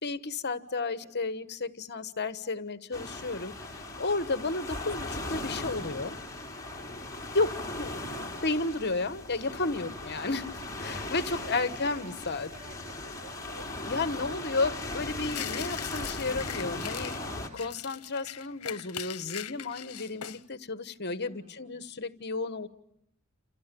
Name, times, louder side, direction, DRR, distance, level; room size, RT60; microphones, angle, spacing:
voice 1, 0.0-6.2 7.3-7.9 8.4-10.5 10.8-12.5 13.9-17.2 17.5-22.7, left 3 dB, 50° left, 13 dB, 1.3 m, -32 dB
sound 1, 2.9-17.5, left 2 dB, 15° left, 3.8 m, -38 dB
voice 2, 4.4-4.7 7.9-9.0 11.3-13.7 21.3-21.9, right 2 dB, 85° right, 6 dB, 7.2 m, -51 dB
sound 2, 15.3-17.2 17.6-20.4, left 11 dB, 75° left, 1.0 m, -41 dB
28.5 x 28.5 x 7.0 m, 0.74 s
head